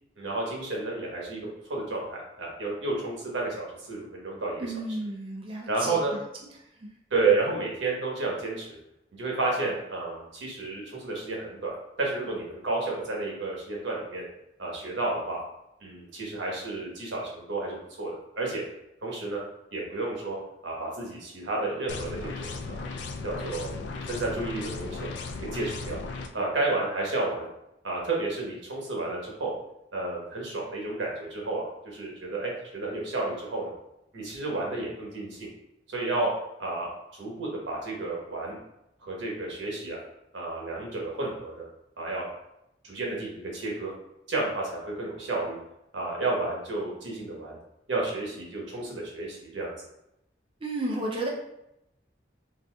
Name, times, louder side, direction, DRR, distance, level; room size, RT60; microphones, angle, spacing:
voice 1, 0.2-1.4 1.7-4.7 5.7-6.1 7.1-8.8 9.1-11.7 12.0-14.2 14.6-15.4 15.8-18.6 19.0-19.4 19.7-20.4 20.6-22.9 23.2-25.1 25.4-26.0 26.3-27.5 27.8-29.5 29.9-33.7 34.1-35.5 35.9-36.3 36.6-38.6 39.0-40.0 40.3-41.6 42.0-42.2 42.8-43.9 44.3-45.6 45.9-47.6 47.9-49.7, right 3 dB, 90° right, -2 dB, 1.0 m, -31 dB
voice 2, 4.6-6.2 6.8-6.9 50.6-51.3, right 2 dB, 30° right, -2 dB, 0.3 m, -32 dB
sound 1, 21.9-26.3, left 3 dB, 75° left, 0.3 m, -36 dB
4.0 x 2.5 x 2.2 m, 0.84 s
head